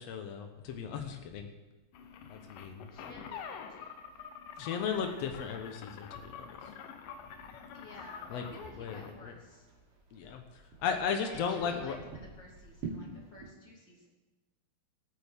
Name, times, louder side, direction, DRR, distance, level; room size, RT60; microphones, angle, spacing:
voice 1, 0.0-1.5 2.3-2.9 4.6-6.7 8.3-8.4 8.8-9.3 10.1-12.0, left 6 dB, 90° left, 5 dB, 1.4 m, -36 dB
sound 1, 1.9-9.2, left 7 dB, 70° left, 2.3 m, -47 dB
sound 2, 2.0-13.5, right 4 dB, 85° right, 4.3 m, -51 dB
voice 2, 2.9-3.9 4.6-5.1 7.7-9.7 11.2-14.1, left 1 dB, 30° left, -3 dB, 3.2 m, -51 dB
22.5 x 9.1 x 3.6 m, 1.2 s
omnidirectional pair, 4.4 m